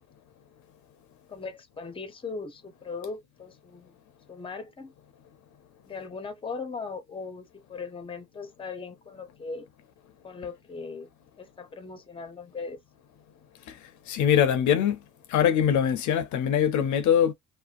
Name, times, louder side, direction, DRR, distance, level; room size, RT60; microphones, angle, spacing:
voice 1, 1.3-4.0 4.3-4.9 5.9-9.7 10.2-11.1 11.4-12.8, left 4 dB, 20° left, 0.6 m, -39 dB
voice 2, 14.1-15.0 15.3-17.3, left 9 dB, 70° left, 0.5 m, -22 dB
2.5 x 2.0 x 2.4 m
cardioid pair, 90°, 30 cm